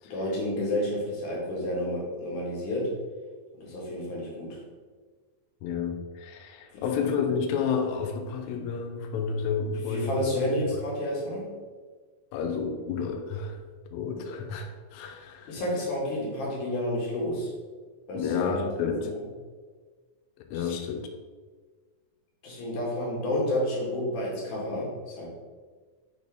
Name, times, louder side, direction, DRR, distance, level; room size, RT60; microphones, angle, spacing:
voice 1, 0.0-2.9 3.6-4.6 6.7-7.1 9.7-11.5 15.4-17.5 18.1-19.2 20.5-20.7 22.4-25.3, left 1 dB, 65° left, -4 dB, 3.0 m, -30 dB
voice 2, 5.6-10.1 12.3-13.6 13.9-15.6 18.1-19.1 20.5-21.1, left 6 dB, 90° left, 4 dB, 1.6 m, -30 dB
6.4 x 4.3 x 3.5 m, 1.4 s
omnidirectional pair, 3.9 m